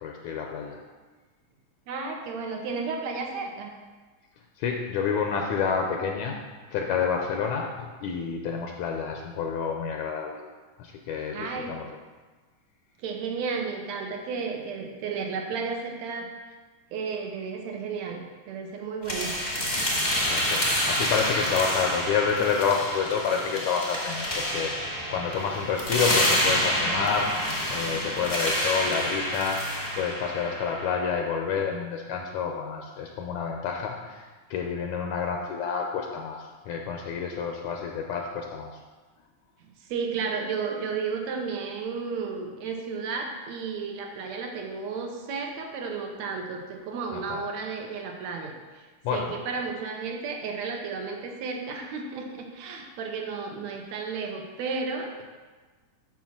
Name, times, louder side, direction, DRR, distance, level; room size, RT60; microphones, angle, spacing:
voice 1, 0.0-0.8 4.6-6.4 6.7-10.4 10.8-11.9 20.1-24.7 25.1-29.6 29.9-34.2 34.5-38.8 47.1-47.4 49.0-49.3, left 6 dB, 75° left, 2 dB, 1.9 m, -29 dB
voice 2, 1.9-3.7 11.3-11.7 13.0-16.3 16.9-19.3 39.8-55.2, right 5 dB, 70° right, 2 dB, 1.9 m, -33 dB
sound 1, 19.0-31.0, equal, 30° left, 0.8 m, -28 dB
7.1 x 6.1 x 6.0 m, 1.3 s
omnidirectional pair, 3.8 m